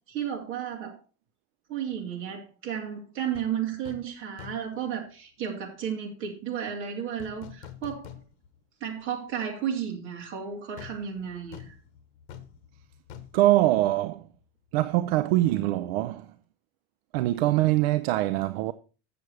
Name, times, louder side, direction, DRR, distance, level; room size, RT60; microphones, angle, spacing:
voice 1, 0.1-1.0 1.7-8.1 8.8-11.7, right 8 dB, 35° right, 2.8 m, -33 dB
sound 1, 3.3-3.5 3.8-4.1 4.4-4.8 7.2-8.6 9.0-9.1 10.8-14.4 14.7-14.8, left 9 dB, 70° left, 1.4 m, -46 dB
voice 2, 13.3-14.3 14.7-16.3 17.1-18.7, right 16 dB, 65° right, 0.6 m, -23 dB
8.0 x 7.3 x 4.7 m
supercardioid pair, 155°, 33 cm